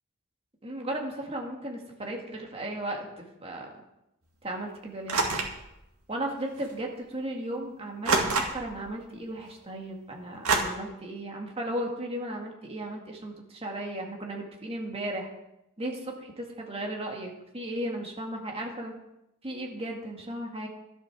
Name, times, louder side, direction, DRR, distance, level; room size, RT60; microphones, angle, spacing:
voice 1, 0.6-3.7 4.4-5.2 6.1-15.3 15.8-18.9 19.4-20.7, right 1 dB, 30° right, 0 dB, 2.1 m, -35 dB
sound 1, 5.1-5.6 6.6-6.7 8.0-8.8 10.4-10.6, right 4 dB, 75° right, 2.1 m, -26 dB
12.5 x 8.1 x 6.2 m, 0.89 s
head